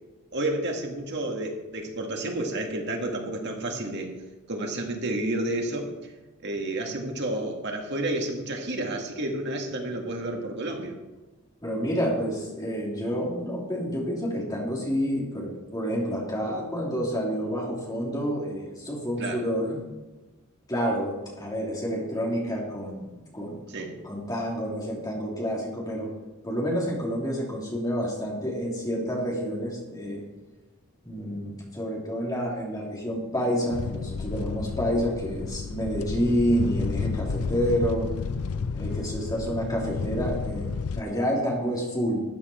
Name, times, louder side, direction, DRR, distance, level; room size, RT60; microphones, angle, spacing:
voice 1, 0.3-4.1 4.5-5.9 6.4-10.9 19.2-19.5 23.7-24.0, right 1 dB, 50° right, 2 dB, 1.9 m, -30 dB
voice 2, 11.6-19.8 20.7-26.1 26.4-30.2 31.0-38.1 38.7-42.2, equal, 20° left, -4 dB, 3.0 m, -29 dB
sound 1, 33.7-41.0, left 4 dB, 80° left, 0.5 m, -31 dB
13.5 x 8.6 x 4.4 m, 1.2 s
head